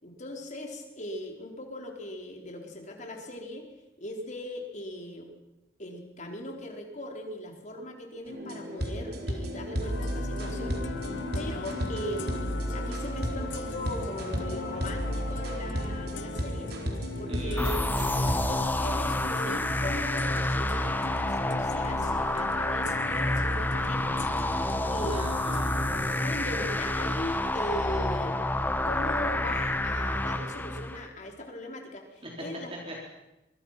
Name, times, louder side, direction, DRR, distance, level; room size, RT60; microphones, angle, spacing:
voice 1, 0.0-3.7 4.0-5.3 5.8-10.8 11.3-16.7 17.2-17.7 18.5-24.2 24.9-25.3 26.2-28.4 28.8-32.7, left 1 dB, 40° left, 2 dB, 4.5 m, -39 dB
sound 1, 8.3-18.4, equal, 60° right, 4.2 m, -33 dB
sound 2, 9.8-26.4, left 4 dB, 80° left, 1.0 m, -40 dB
voice 2, 17.3-17.8 25.1-25.8 32.2-32.3 32.9-33.0, equal, 30° right, -2 dB, 4.2 m, -39 dB
sound 3, 17.6-31.1, left 1 dB, 10° left, 1.0 m, -29 dB
25.5 x 23.5 x 5.9 m, 0.96 s
head